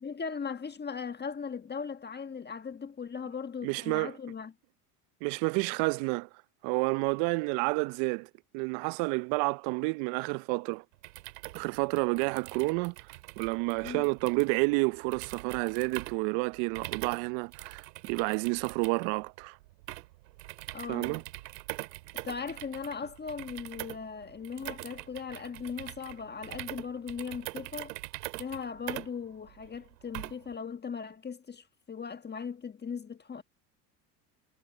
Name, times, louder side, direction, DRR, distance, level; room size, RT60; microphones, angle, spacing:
voice 1, 0.0-4.5 13.8-14.0 20.7-21.2 22.2-27.9 28.4-33.4, left 6 dB, 20° left, 1.4 m, -38 dB
voice 2, 3.6-4.1 5.2-6.3 6.6-8.3 8.5-10.8 11.5-12.9 13.4-19.6 20.9-21.2, right 29 dB, 60° right, 0.7 m, -30 dB
sound 1, 10.9-30.6, right 19 dB, 80° right, 2.6 m, -43 dB
hypercardioid pair, 90°, 48 cm